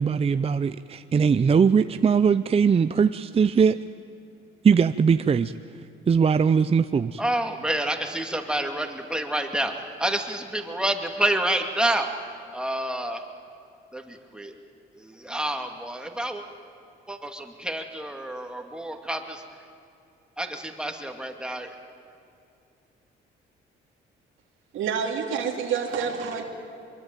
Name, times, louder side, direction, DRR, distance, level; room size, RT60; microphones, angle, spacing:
voice 1, 0.0-3.8 4.6-5.5 6.1-7.2, right 6 dB, 30° right, 12 dB, 0.5 m, -20 dB
voice 2, 7.2-12.1 12.5-13.2 13.9-14.6 14.9-16.4 17.1-19.4 20.4-21.7, right 1 dB, 5° right, 4 dB, 2.5 m, -28 dB
voice 3, 24.7-26.4, right 6 dB, 85° right, 0 dB, 2.7 m, -28 dB
24.0 x 22.5 x 9.2 m, 2.5 s
cardioid pair, 90°, 20 cm